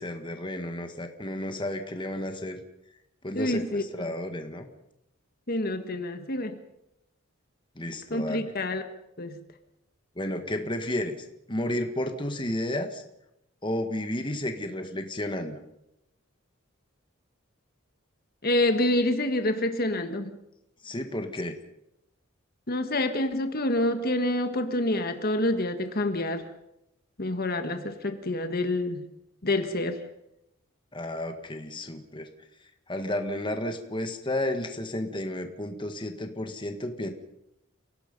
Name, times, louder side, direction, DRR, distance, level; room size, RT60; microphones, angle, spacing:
voice 1, 0.0-2.6 3.2-4.7 7.7-8.4 10.2-11.1 11.5-13.0 13.6-15.6 20.8-21.6 30.9-32.3 32.9-37.1, left 1 dB, 25° left, 6 dB, 1.7 m, -32 dB
voice 2, 3.3-4.1 5.5-6.6 8.1-8.8 9.2-9.4 18.4-20.3 22.7-26.5 27.2-29.1 29.4-30.0, left 1 dB, 50° left, 7 dB, 1.6 m, -27 dB
29.0 x 18.0 x 5.4 m, 0.85 s
head